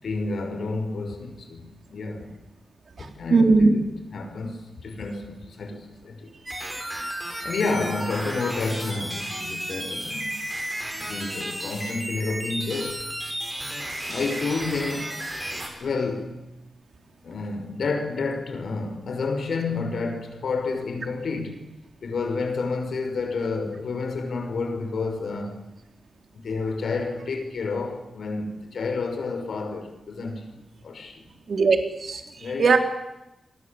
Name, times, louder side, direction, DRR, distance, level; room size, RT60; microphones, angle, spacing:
voice 1, 0.0-2.4 3.0-3.8 4.1-6.3 7.4-10.3 10.9-13.1 14.1-15.5 15.8-16.4 17.2-21.7 22.0-25.7 26.4-31.2 32.4-32.7, left 3 dB, 65° left, 5.8 m, -30 dB
voice 2, 3.0-3.7 31.5-32.2 32.6-32.8, right 4 dB, 50° right, 3.7 m, -19 dB
sound 1, 6.5-15.7, right 1 dB, 10° right, 6.3 m, -33 dB
29.0 x 23.0 x 8.7 m
wide cardioid pair, 170°, 0 cm